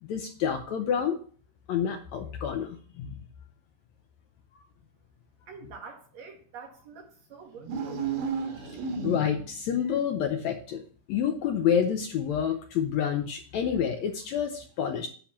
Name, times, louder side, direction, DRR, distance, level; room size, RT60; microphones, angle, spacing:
voice 1, 0.0-1.2 1.7-3.1 9.0-10.8 11.1-15.1, left 8 dB, 75° left, 1.7 m, -28 dB
voice 2, 5.5-8.1, right 5 dB, 60° right, 2.4 m, -46 dB
sound 1, 7.6-9.6, right 5 dB, 80° right, 3.0 m, -32 dB
9.9 x 3.7 x 7.2 m
omnidirectional pair, 3.8 m